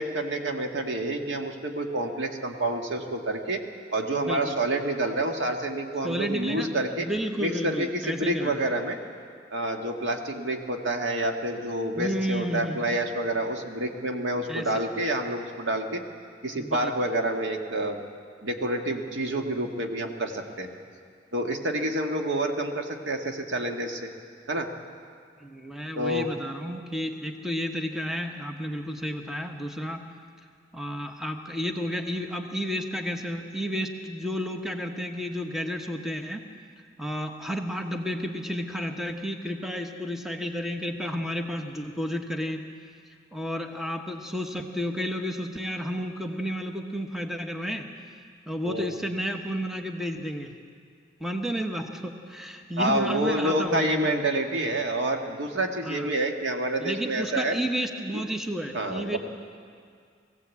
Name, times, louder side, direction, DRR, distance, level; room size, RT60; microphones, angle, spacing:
voice 1, 0.0-3.6 3.9-7.1 7.4-9.0 9.5-16.0 16.4-18.0 18.4-20.7 21.3-24.1 24.5-24.7 26.0-26.3 48.6-48.9 52.8-57.6 58.7-59.2, right 1 dB, 90° right, 3 dB, 1.8 m, -28 dB
voice 2, 4.2-4.5 6.0-6.7 7.0-8.6 12.0-12.8 14.5-14.8 16.6-16.9 25.4-30.0 30.7-36.4 37.0-42.6 43.3-47.9 48.5-50.5 51.2-54.2 55.8-56.1 56.8-59.2, equal, ahead, 4 dB, 1.1 m, -31 dB
20.0 x 16.0 x 8.3 m, 2.2 s
head